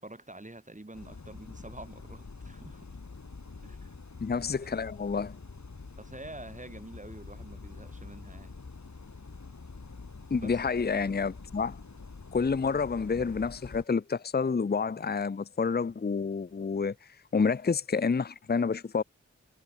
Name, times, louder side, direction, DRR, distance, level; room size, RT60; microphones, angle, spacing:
voice 1, 0.0-2.9 3.6-3.9 6.0-8.5 10.4-11.1, right 2 dB, 25° right, 4.5 m, -47 dB
sound 1, 0.9-13.8, left 4 dB, 70° left, 6.5 m, -46 dB
voice 2, 4.2-5.3 10.3-11.8 12.3-16.9 17.3-19.0, left 5 dB, 35° left, 0.6 m, -29 dB
wide cardioid pair, 50°, 29 cm